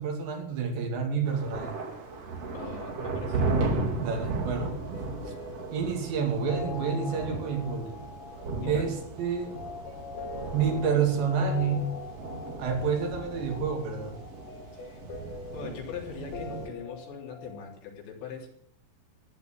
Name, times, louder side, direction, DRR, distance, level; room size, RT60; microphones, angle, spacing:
voice 1, 0.0-1.7 4.0-4.7 5.7-8.0 8.7-9.6 10.5-11.9 12.6-14.1, right 6 dB, 85° right, 3 dB, 4.9 m, -29 dB
sound 1, 1.3-16.7, right 3 dB, 45° right, 2.8 m, -35 dB
voice 2, 2.5-3.4 8.6-8.9 14.8-15.0 15.5-18.5, left 6 dB, 85° left, 0 dB, 5.7 m, -41 dB
sound 2, 4.8-17.7, left 4 dB, 65° left, 3.3 m, -43 dB
15.0 x 10.5 x 7.8 m, 0.69 s
omnidirectional pair, 4.9 m